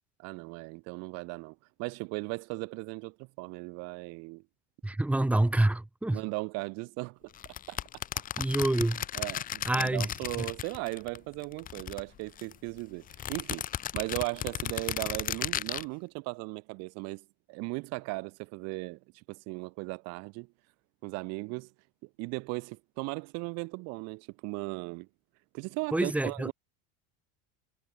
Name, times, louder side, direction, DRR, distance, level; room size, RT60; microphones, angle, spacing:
voice 1, 0.2-4.4 6.1-7.3 7.7-7.8 9.1-13.6 13.9-20.5 21.0-21.7 22.2-25.1 25.5-26.5, right 28 dB, 60° right, 4.5 m, -37 dB
voice 2, 4.8-6.2 8.4-9.0 9.7-10.1 10.4-10.5 25.9-26.5, right 1 dB, 5° right, 6.0 m, -27 dB
sound 1, 7.4-11.2 11.4-12.6 13.1-15.8, left 11 dB, 30° left, 1.4 m, -35 dB
cardioid pair, 155°, 30 cm